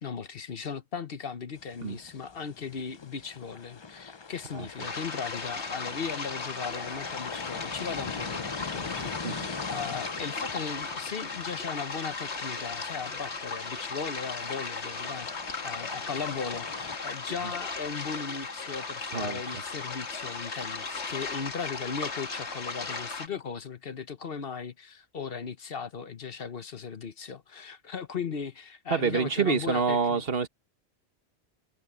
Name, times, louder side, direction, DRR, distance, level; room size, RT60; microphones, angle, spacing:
voice 1, 0.0-15.3 15.6-30.2, left 6 dB, 60° left, 1.1 m, -37 dB
sound 1, 1.5-17.0, left 5 dB, 30° left, 0.5 m, -43 dB
sound 2, 4.8-23.3, left 4 dB, 75° left, 2.2 m, -36 dB
voice 2, 28.9-30.5, right 5 dB, 60° right, 1.4 m, -27 dB
omnidirectional pair, 1.2 m